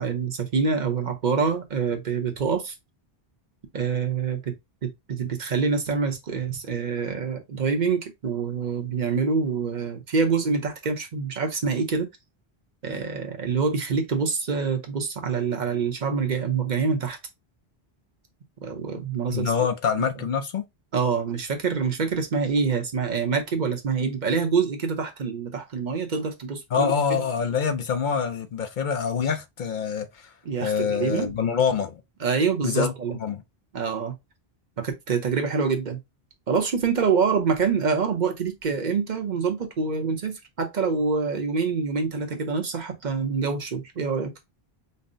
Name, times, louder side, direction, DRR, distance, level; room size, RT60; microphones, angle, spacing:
voice 1, 0.0-2.7 3.7-4.5 4.8-12.1 12.8-17.2 18.6-19.5 20.9-27.2 30.4-31.3 32.2-33.2 33.7-34.1 34.8-36.0 36.5-44.3, right 5 dB, 50° right, 0.9 m, -26 dB
voice 2, 19.3-20.6 26.7-30.3 30.6-32.0 32.6-32.9 33.2-33.4, left 6 dB, 60° left, 0.6 m, -25 dB
5.4 x 2.0 x 2.6 m
omnidirectional pair, 1.1 m